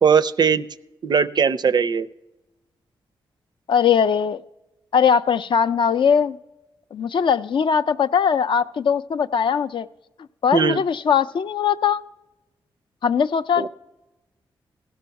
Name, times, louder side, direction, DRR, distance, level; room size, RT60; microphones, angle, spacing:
voice 1, 0.0-0.7 1.0-2.1 10.5-10.8 13.6-13.7, right 6 dB, 50° right, 16 dB, 0.4 m, -19 dB
voice 2, 3.7-4.4 4.9-6.4 6.9-9.9 10.4-12.0 13.0-13.7, left 7 dB, 60° left, 12 dB, 0.3 m, -20 dB
15.0 x 6.2 x 5.7 m, 1.0 s
supercardioid pair, 45°, 10 cm